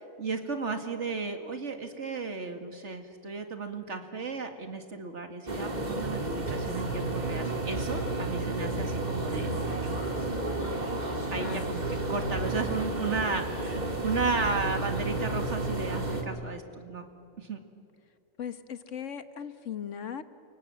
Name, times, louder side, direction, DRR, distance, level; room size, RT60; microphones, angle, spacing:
voice 1, 0.2-10.0 11.3-17.0 17.4-17.6, right 4 dB, 70° right, 6 dB, 2.5 m, -34 dB
sound 1, 5.5-16.2, right 2 dB, 35° right, 2.6 m, -31 dB
voice 2, 11.4-11.7 18.4-20.2, left 8 dB, 85° left, 11 dB, 1.6 m, -38 dB
29.5 x 24.5 x 7.7 m, 2.4 s
omnidirectional pair, 1.3 m